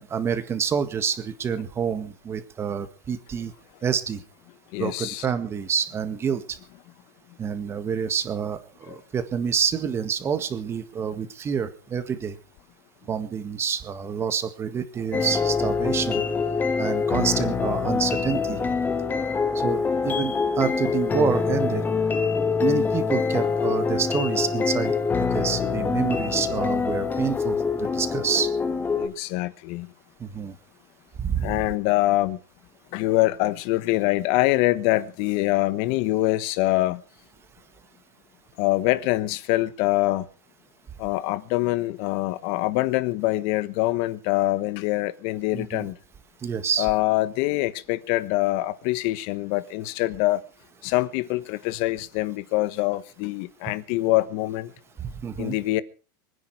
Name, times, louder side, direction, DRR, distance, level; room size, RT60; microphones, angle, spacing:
voice 1, 0.0-3.5 3.8-4.2 4.8-6.6 7.4-12.4 13.1-16.2 16.8-18.6 19.5-21.8 22.6-28.5 30.2-30.6 31.2-31.6 45.5-45.9 46.4-46.9 55.0-55.6, right 7 dB, 25° right, 1.8 m, -28 dB
voice 2, 4.7-5.3 8.9-9.0 29.0-29.9 31.4-32.4 32.9-37.0 38.6-40.3 41.0-46.0 46.8-50.4 50.8-54.7 55.4-55.8, left 18 dB, 55° left, 1.2 m, -24 dB
sound 1, 15.1-29.1, left 5 dB, 15° left, 1.6 m, -25 dB
24.5 x 10.0 x 4.8 m
supercardioid pair, 140°, 11 cm